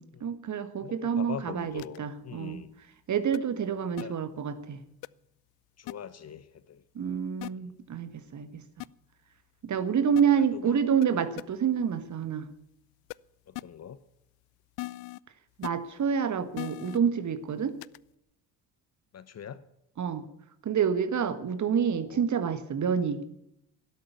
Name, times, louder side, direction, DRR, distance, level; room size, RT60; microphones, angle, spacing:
voice 1, 0.0-2.6 3.1-4.8 6.9-8.6 9.6-12.5 15.6-17.8 20.0-20.2 20.6-23.2, right 7 dB, 35° right, 12 dB, 1.6 m, -28 dB
voice 2, 0.8-2.7 4.0-4.2 5.8-6.8 7.6-7.7 10.4-10.8 13.5-14.0 19.1-19.6 21.8-22.2, left 8 dB, 35° left, 16 dB, 0.9 m, -42 dB
sound 1, 1.8-2.0 3.3-3.4 4.0-4.1 5.0-5.1 5.9-6.0 7.4-7.5 8.8-8.9 10.2-10.3 11.0-11.1 11.4-11.5 13.1-13.2 13.5-13.6 14.8-15.2 15.6-15.7 16.6-17.0 17.8-18.0, left 24 dB, 55° left, 0.5 m, -37 dB
12.5 x 11.0 x 8.4 m, 0.78 s
figure-of-eight pair, 55°, 47 cm